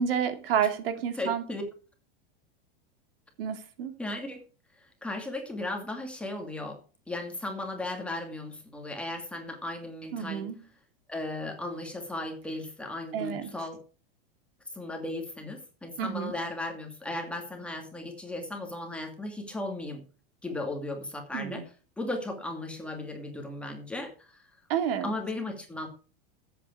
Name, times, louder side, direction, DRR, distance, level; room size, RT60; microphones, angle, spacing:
voice 1, 0.0-1.4 3.4-3.9 10.1-10.6 13.1-13.5 16.0-16.3 21.3-21.6 24.7-25.1, right 8 dB, 75° right, 8 dB, 2.6 m, -29 dB
voice 2, 1.2-1.6 4.0-4.4 5.0-6.8 7.1-10.5 11.1-13.8 14.7-20.0 20.4-24.4 25.0-25.9, left 2 dB, 5° left, 2 dB, 2.5 m, -36 dB
14.5 x 8.5 x 4.7 m, 0.37 s
supercardioid pair, 160°, 29 cm